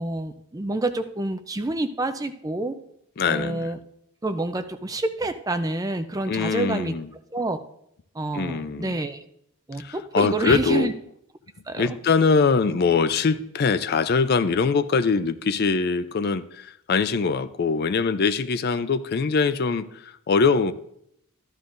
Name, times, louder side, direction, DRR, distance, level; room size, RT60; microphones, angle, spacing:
voice 1, 0.0-2.8 3.2-3.8 4.2-6.9 7.3-7.6 8.1-9.2 9.7-10.9 11.7-12.0, right 2 dB, 15° right, 9 dB, 0.4 m, -28 dB
voice 2, 3.2-3.7 6.2-7.1 8.3-9.0 9.8-10.9 11.8-20.7, left 5 dB, 45° left, 13 dB, 0.4 m, -23 dB
13.5 x 11.5 x 2.6 m, 0.74 s
head